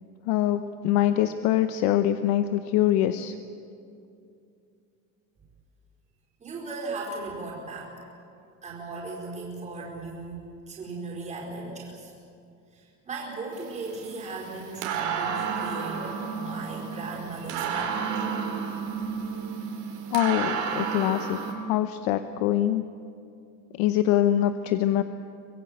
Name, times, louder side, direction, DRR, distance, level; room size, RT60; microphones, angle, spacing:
voice 1, 0.3-3.3 20.1-22.8 23.8-25.0, left 12 dB, 80° left, 9 dB, 0.9 m, -24 dB
voice 2, 6.4-8.1 8.6-12.1 12.7-18.0, right 3 dB, 20° right, -3 dB, 4.7 m, -37 dB
sound 1, 13.5-21.5, right 6 dB, 60° right, 4.1 m, -32 dB
24.5 x 21.5 x 8.0 m, 2.6 s
cardioid pair, 180°, 34 cm